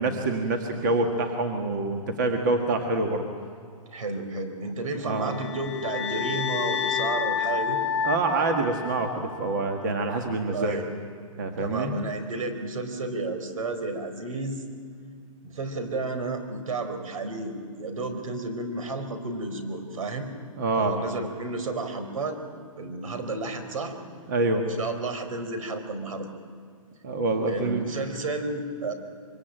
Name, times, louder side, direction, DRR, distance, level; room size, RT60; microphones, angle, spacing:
voice 1, 0.0-3.2 5.0-5.4 8.0-10.8 11.4-11.9 20.6-21.0 24.3-24.7 27.0-27.9, right 3 dB, 35° right, 4 dB, 1.7 m, -26 dB
voice 2, 3.9-7.8 10.5-10.9 11.6-14.6 15.4-20.3 20.7-22.4 22.8-24.0 24.8-26.3 27.5-28.9, right 2 dB, 70° right, 9 dB, 4.5 m, -32 dB
sound 1, 5.2-9.5, left 7 dB, 45° left, 1.4 m, -29 dB
25.0 x 24.0 x 9.1 m, 2.3 s
hypercardioid pair, 175°, 18 cm